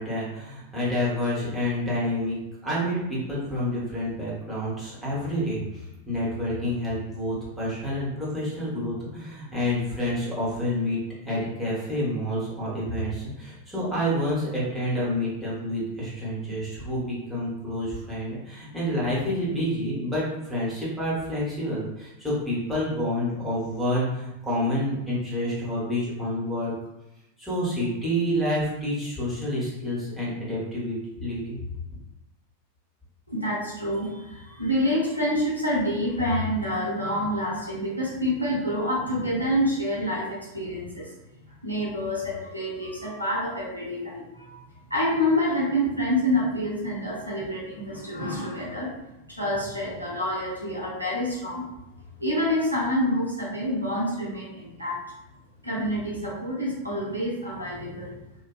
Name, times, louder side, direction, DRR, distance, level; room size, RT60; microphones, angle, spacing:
voice 1, 0.0-2.4 2.6-11.0 11.2-26.7 27.4-31.6, left 1 dB, ahead, -8 dB, 1.1 m, -28 dB
voice 2, 33.3-41.1 41.6-44.6 44.9-49.0 49.4-51.7 52.2-55.0 55.6-58.1, equal, 90° right, -6 dB, 0.7 m, -27 dB
2.5 x 2.2 x 2.3 m, 0.93 s
figure-of-eight pair, 90°, 0 cm